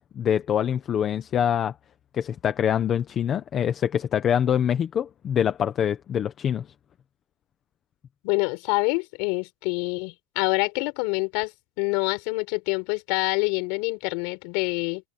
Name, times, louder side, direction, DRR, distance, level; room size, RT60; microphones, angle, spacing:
voice 1, 0.1-1.7 2.1-6.7, left 9 dB, 20° left, 0.9 m, -24 dB
voice 2, 8.2-11.5 11.8-15.0, left 30 dB, 40° left, 6.8 m, -26 dB
supercardioid pair, 180°, 0 cm